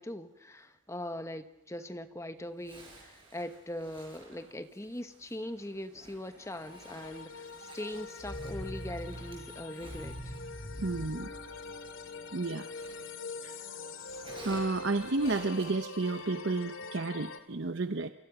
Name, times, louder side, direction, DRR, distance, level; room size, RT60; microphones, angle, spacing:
voice 1, 0.0-10.3, left 1 dB, 15° left, 10 dB, 1.0 m, -41 dB
Zipper (clothing), 2.6-13.5 13.8-16.7, right 1 dB, 25° right, 6.5 m, -54 dB
sound 1, 6.4-17.4, left 4 dB, 70° left, 2.4 m, -44 dB
sound 2, 8.2-12.2, right 1 dB, 35° left, 3.2 m, -44 dB
voice 2, 10.8-11.3 12.3-12.7 13.4-13.6 14.4-18.1, right 3 dB, 60° right, 9 dB, 0.8 m, -31 dB
29.0 x 25.0 x 6.1 m, 0.89 s
head